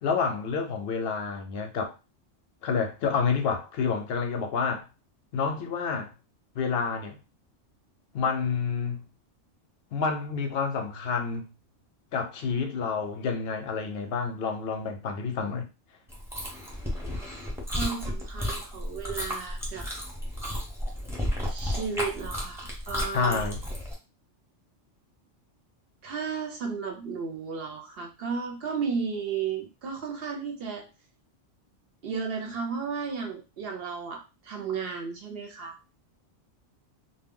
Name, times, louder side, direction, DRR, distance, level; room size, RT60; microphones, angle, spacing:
voice 1, 0.0-1.9 2.6-4.9 5.3-6.1 6.6-7.2 8.1-9.0 9.9-11.5 12.1-15.7 23.1-23.6, left 5 dB, 65° left, 0.7 m, -29 dB
Chewing mastication, 16.1-23.9, equal, 5° right, 0.6 m, -33 dB
voice 2, 17.7-19.9 21.4-23.4 26.0-30.9 32.0-35.8, right 5 dB, 65° right, 0.7 m, -34 dB
2.2 x 2.1 x 3.6 m
omnidirectional pair, 1.3 m